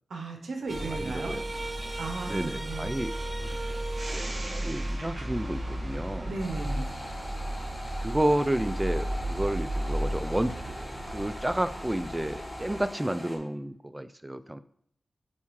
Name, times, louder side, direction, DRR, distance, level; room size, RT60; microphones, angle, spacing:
voice 1, 0.1-1.3 2.0-2.9 6.2-6.9, right 3 dB, 80° right, 3 dB, 0.9 m, -35 dB
sound 1, 0.7-12.8, right 1 dB, 35° right, 1.7 m, -34 dB
voice 2, 0.9-1.4 2.3-3.8 4.2-6.3 8.0-14.6, right 1 dB, 15° right, 13 dB, 0.4 m, -31 dB
sound 2, 6.4-13.4, left 1 dB, 20° left, 1.6 m, -41 dB
7.3 x 4.3 x 3.2 m, 0.65 s
cardioid pair, 55°, 0 cm